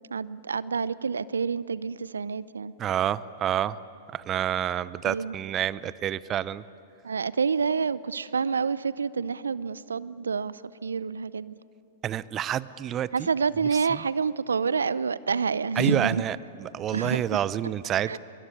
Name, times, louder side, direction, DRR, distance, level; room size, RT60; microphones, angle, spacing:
voice 1, 0.1-2.7 5.1-5.3 7.0-11.6 13.1-16.2 16.9-17.2 18.1-18.2, right 5 dB, 80° right, 19 dB, 0.5 m, -28 dB
voice 2, 2.8-3.8 4.1-6.6 12.0-13.3 13.9-14.0 15.8-18.2, right 10 dB, 30° right, 19 dB, 0.6 m, -28 dB
25.0 x 22.5 x 9.8 m, 2.8 s
figure-of-eight pair, 105°, 0 cm